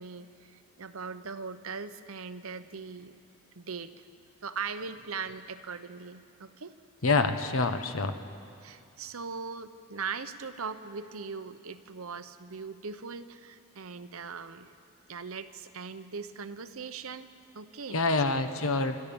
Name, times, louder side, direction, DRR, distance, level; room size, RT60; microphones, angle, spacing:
voice 1, 0.0-3.2 3.5-3.9 4.4-6.7 8.6-14.7 15.1-18.0 18.3-18.9, right 5 dB, 75° right, 11 dB, 0.8 m, -40 dB
voice 2, 7.0-8.2 17.9-19.0, left 3 dB, 70° left, 9 dB, 1.1 m, -26 dB
29.5 x 12.5 x 7.1 m, 2.4 s
head